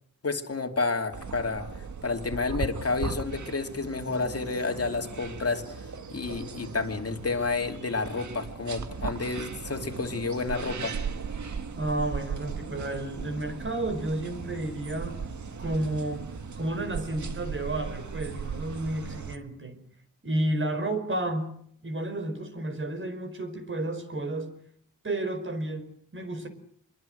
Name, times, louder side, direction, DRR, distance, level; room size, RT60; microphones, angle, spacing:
voice 1, 0.2-1.7 2.0-5.8 6.1-11.0, left 4 dB, 45° left, 2.8 m, -30 dB
sound 1, 1.1-19.4, right 5 dB, 65° right, 1.9 m, -37 dB
voice 2, 11.8-15.2 15.6-19.8 20.2-21.5 21.8-24.5 25.0-26.5, right 1 dB, 40° right, 5.1 m, -31 dB
25.5 x 22.5 x 8.0 m
wide cardioid pair, 110°, 32 cm